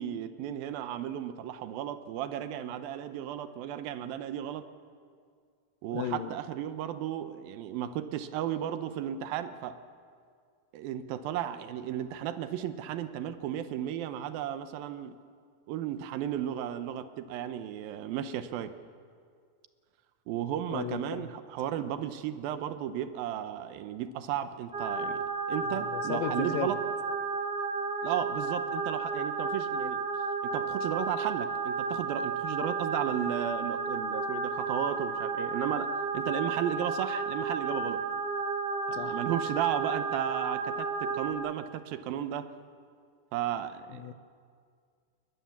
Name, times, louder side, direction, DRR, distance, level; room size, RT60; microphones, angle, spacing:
voice 1, 0.0-4.7 5.8-9.8 10.7-15.2 15.7-18.7 20.3-26.8 28.0-30.0 30.4-38.0 38.9-42.5 43.3-44.1, right 11 dB, 85° right, 11 dB, 2.6 m, -34 dB
voice 2, 5.9-6.3 20.7-21.4 25.9-26.8 38.9-39.2 43.9-44.1, left 11 dB, 75° left, 12 dB, 2.5 m, -35 dB
sound 1, 24.7-41.3, right 4 dB, 55° right, 0.6 m, -32 dB
21.0 x 20.0 x 7.2 m, 2.1 s
omnidirectional pair, 4.3 m